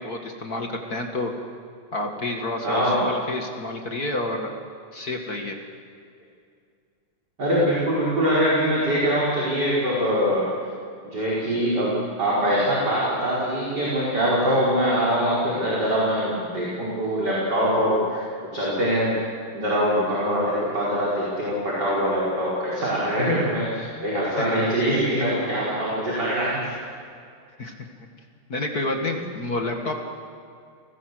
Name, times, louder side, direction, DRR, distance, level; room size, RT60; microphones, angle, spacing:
voice 1, 0.0-1.4 1.9-4.5 4.9-5.6 24.4-24.7 27.6-27.7 28.5-30.0, left 2 dB, 40° left, 3 dB, 1.4 m, -29 dB
voice 2, 2.6-3.0 7.4-10.5 11.0-18.2 18.5-19.1 19.5-26.6, equal, 25° right, -6 dB, 5.4 m, -23 dB
30.0 x 20.0 x 7.9 m, 2.3 s
omnidirectional pair, 4.6 m